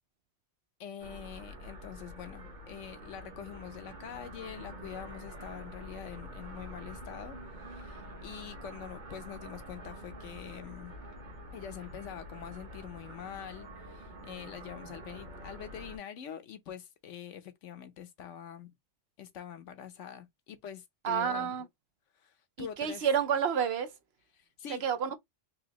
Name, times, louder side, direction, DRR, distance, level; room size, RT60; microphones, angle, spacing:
voice 1, 0.8-11.0 11.5-18.7 19.2-21.6 22.2-23.1 24.3-24.8, left 9 dB, 75° left, 1.1 m, -45 dB
sound 1, 1.0-16.0, equal, 40° right, 1.2 m, -46 dB
voice 2, 21.0-21.7 22.6-23.9 24.7-25.1, right 7 dB, 60° right, 0.8 m, -29 dB
4.0 x 2.8 x 2.9 m
omnidirectional pair, 1.3 m